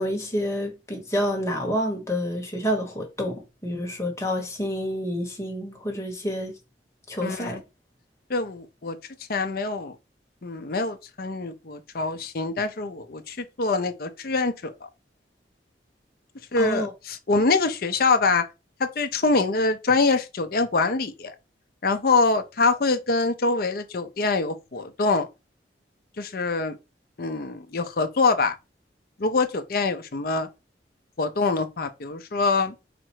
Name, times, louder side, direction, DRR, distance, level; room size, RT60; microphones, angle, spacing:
voice 1, 0.0-6.5 7.1-7.6 16.6-16.9, equal, 15° left, 1.4 m, -28 dB
voice 2, 7.2-7.6 8.3-9.0 9.3-9.9 10.4-14.7 16.5-18.4 18.8-21.3 21.8-25.3 26.2-26.8 27.2-28.5 29.2-30.5 31.2-32.7, left 3 dB, 55° left, 0.6 m, -24 dB
4.3 x 2.6 x 4.5 m
head